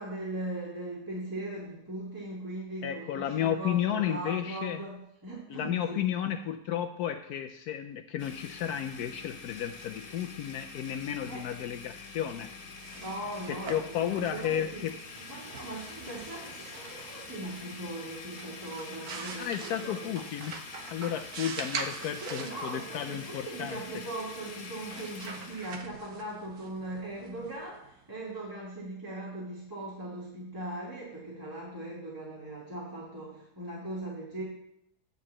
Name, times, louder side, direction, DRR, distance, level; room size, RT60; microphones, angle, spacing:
voice 1, 0.0-6.0 11.3-11.4 13.0-14.8 15.3-20.0 22.2-34.4, right 1 dB, 15° right, -7 dB, 2.1 m, -39 dB
voice 2, 2.8-4.8 5.5-12.5 13.5-14.9 19.4-20.6 20.9-23.8, left 10 dB, 75° left, 6 dB, 1.1 m, -33 dB
Domestic sounds home sounds, 8.2-25.8, left 4 dB, 55° left, 1.3 m, -46 dB
sound 1, 12.6-28.3, right 5 dB, 70° right, 1.4 m, -44 dB
10.0 x 4.0 x 7.5 m, 0.76 s
omnidirectional pair, 1.7 m